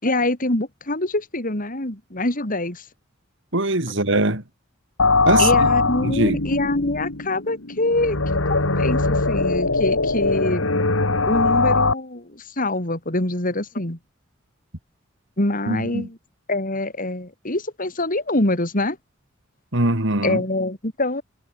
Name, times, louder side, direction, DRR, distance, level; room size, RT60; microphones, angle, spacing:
voice 1, 0.0-2.8 5.3-8.2 8.5-10.7 11.3-14.0 15.4-16.2 16.5-19.0 20.2-21.2, left 2 dB, 45° left, 4.0 m, -25 dB
voice 2, 3.5-4.4 5.3-5.7 6.0-6.4 15.7-16.1 19.7-20.4, right 2 dB, 65° right, 3.7 m, -21 dB
sound 1, 5.0-11.9, left 3 dB, 85° left, 2.7 m, -21 dB
head